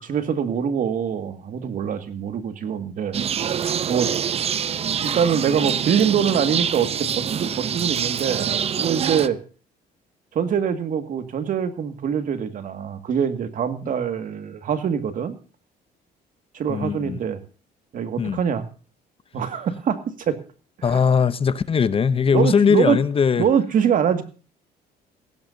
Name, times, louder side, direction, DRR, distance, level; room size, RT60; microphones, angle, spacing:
voice 1, 0.0-3.1 3.9-4.1 5.0-9.4 10.3-15.4 16.5-17.4 17.9-18.7 19.3-20.4 20.8-21.1 22.3-23.0 23.4-24.2, right 7 dB, 55° right, 2.0 m, -24 dB
sound 1, 3.1-9.3, right 8 dB, 35° right, 0.6 m, -25 dB
voice 2, 16.7-17.2 18.2-18.4 20.8-23.5, left 6 dB, 35° left, 0.7 m, -20 dB
17.0 x 16.0 x 2.7 m
cardioid pair, 110°, 17 cm